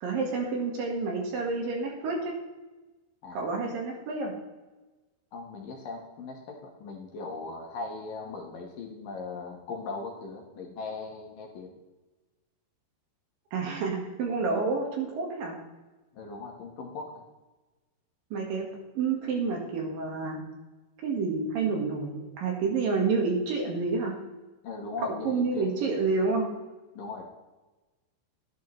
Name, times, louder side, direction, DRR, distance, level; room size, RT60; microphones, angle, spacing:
voice 1, 0.0-2.3 3.3-4.3 13.5-15.6 18.3-18.7 18.9-20.4 21.0-24.1 25.0-26.5, right 4 dB, 65° right, 0 dB, 2.9 m, -29 dB
voice 2, 5.3-11.8 16.1-17.2 24.6-25.9 26.9-27.2, left 3 dB, 65° left, 0 dB, 2.5 m, -39 dB
12.0 x 11.0 x 3.1 m, 1.2 s
omnidirectional pair, 4.8 m